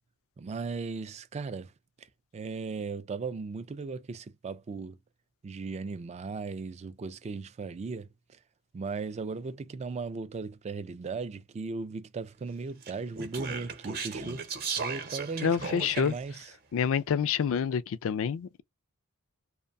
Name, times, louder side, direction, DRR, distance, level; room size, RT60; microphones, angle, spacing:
voice 1, 0.4-1.7 2.0-2.1 2.3-5.0 5.4-8.4 8.7-14.4 14.7-16.5, right 4 dB, 30° right, 0.3 m, -37 dB
Speech, 12.8-16.3, right 5 dB, 45° right, 0.8 m, -36 dB
voice 2, 15.4-16.1 16.7-18.6, left 7 dB, 65° left, 0.3 m, -27 dB
2.6 x 2.1 x 2.4 m
head